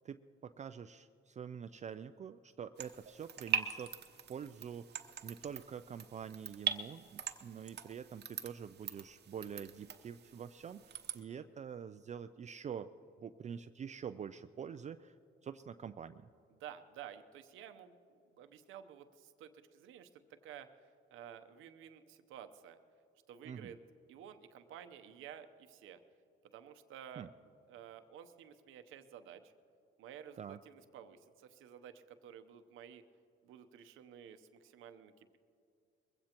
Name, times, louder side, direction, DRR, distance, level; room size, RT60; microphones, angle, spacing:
voice 1, 0.0-3.9 4.3-5.0 5.2-12.9 13.2-15.2 15.4-16.3 23.4-23.8 27.2-27.3 30.4-30.6, right 7 dB, 35° right, 10 dB, 0.4 m, -46 dB
sound 1, 2.8-11.2, right 8 dB, 55° right, 0.9 m, -42 dB
voice 2, 16.5-22.8 23.3-23.8 24.1-26.0 26.4-27.3 27.7-29.5 30.0-33.0 33.4-35.4, right 9 dB, 90° right, 8 dB, 0.8 m, -53 dB
22.0 x 16.0 x 3.0 m, 2.5 s
cardioid pair, 90°, 20 cm